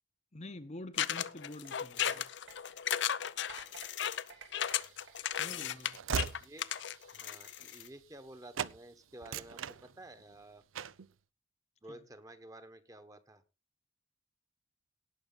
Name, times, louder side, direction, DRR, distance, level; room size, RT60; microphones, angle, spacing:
voice 1, 0.3-2.2 5.3-6.0 11.9-12.0, left 1 dB, 35° left, 1.0 m, -47 dB
sound 1, 1.0-7.9, left 10 dB, 60° left, 0.6 m, -35 dB
sound 2, 1.1-6.0 6.6-6.9, right 5 dB, 65° right, 3.1 m, -56 dB
voice 2, 1.9-2.3 5.4-5.7 6.4-6.7 7.1-10.6 11.8-13.4, right 1 dB, 15° right, 1.3 m, -52 dB
Train / Slam, 4.7-8.3 8.5-8.8 9.1-10.3 10.7-11.1, right 7 dB, 90° right, 0.6 m, -40 dB
18.0 x 6.4 x 4.0 m
head